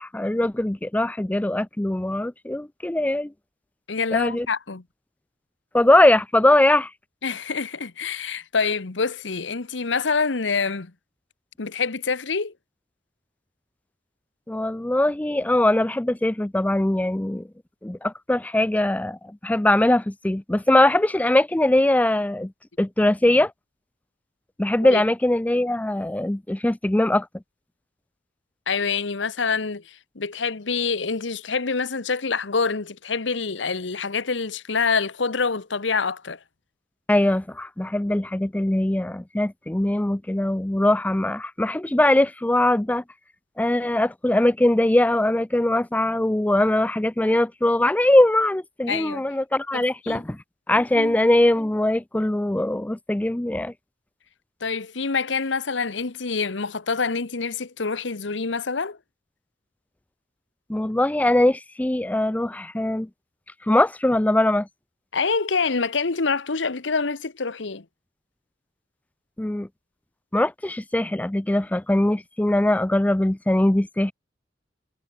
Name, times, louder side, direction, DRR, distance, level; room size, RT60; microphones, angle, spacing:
voice 1, 0.0-3.3 4.1-4.5 5.7-6.9 14.5-17.5 17.8-22.5 22.8-23.5 24.6-27.3 37.1-43.0 43.6-50.4 50.7-53.7 60.7-63.1 63.7-64.7 69.4-69.7 70.3-74.1, left 1 dB, 10° left, 0.4 m, -21 dB
voice 2, 3.9-4.8 7.2-10.9 11.6-12.5 24.8-25.0 28.7-36.4 48.9-49.2 49.7-50.2 50.9-51.2 54.6-59.0 65.1-67.8, left 4 dB, 80° left, 1.1 m, -26 dB
head